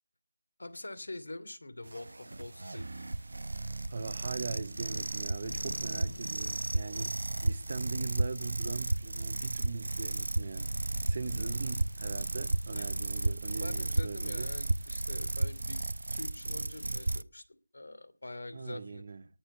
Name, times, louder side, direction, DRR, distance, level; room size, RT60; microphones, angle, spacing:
voice 1, 0.6-3.1 12.7-13.0 13.6-15.8 16.1-17.4 17.7-19.0, left 2 dB, 70° left, 2.8 m, -45 dB
sound 1, 1.8-17.2, right 2 dB, 65° right, 1.0 m, -34 dB
Thunder / Rain, 3.6-7.5 8.2-8.7 9.1-9.2 9.5-13.2, left 2 dB, 45° left, 1.0 m, -52 dB
voice 2, 3.9-7.1 7.4-10.7 11.1-14.5 18.5-19.3, right 4 dB, 25° right, 0.9 m, -40 dB
19.0 x 7.8 x 8.9 m
figure-of-eight pair, 180°, 0 cm